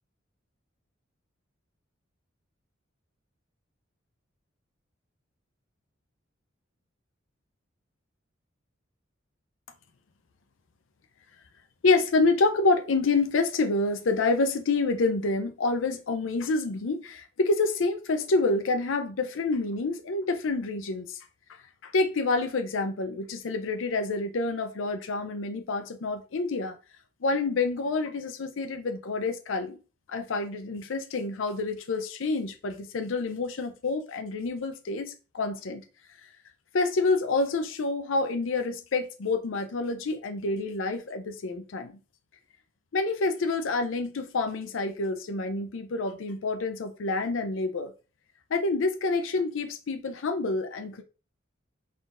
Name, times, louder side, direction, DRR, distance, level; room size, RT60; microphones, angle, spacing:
voice 1, 11.8-21.2 21.8-26.8 27.2-29.8 30.1-35.8 36.7-42.0 42.9-47.9 48.5-51.0, left 3 dB, 75° left, 0.5 m, -28 dB
3.9 x 3.9 x 2.4 m
head